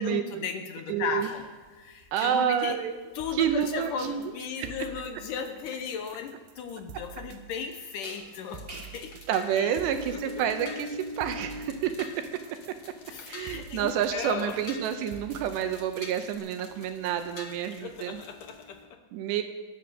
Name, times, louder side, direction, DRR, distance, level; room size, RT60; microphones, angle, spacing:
voice 1, 0.0-1.5 1.7-2.8 3.1-9.1 9.5-9.8 10.0-10.4 13.1-14.6 15.0-15.1 17.8-19.0, left 7 dB, 85° left, 6 dB, 1.8 m, -36 dB
voice 2, 0.9-1.3 2.1-3.0 3.4-4.2 4.6-4.7 9.3-12.2 13.3-18.2 19.1-19.4, right 9 dB, 85° right, 7 dB, 3.0 m, -29 dB
sound 1, 1.2-18.8, equal, 20° right, 1.8 m, -47 dB
sound 2, 3.2-16.3, right 7 dB, 70° right, 2.4 m, -47 dB
sound 3, 8.2-18.6, left 5 dB, 65° left, 1.2 m, -49 dB
22.5 x 8.8 x 6.4 m, 1.4 s
omnidirectional pair, 5.0 m